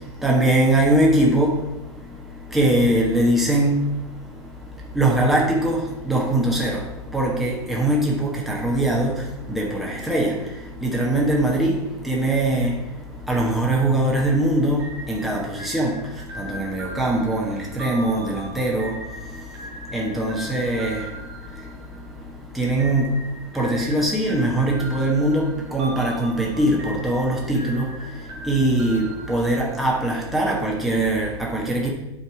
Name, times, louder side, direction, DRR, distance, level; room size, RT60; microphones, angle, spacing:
voice 1, 0.0-31.9, right 1 dB, ahead, 1.3 m, -22 dB
sound 1, 14.8-22.2 22.8-30.0, right 1 dB, 60° right, 2.2 m, -40 dB
9.0 x 3.5 x 4.8 m
hypercardioid pair, 105°, 15 cm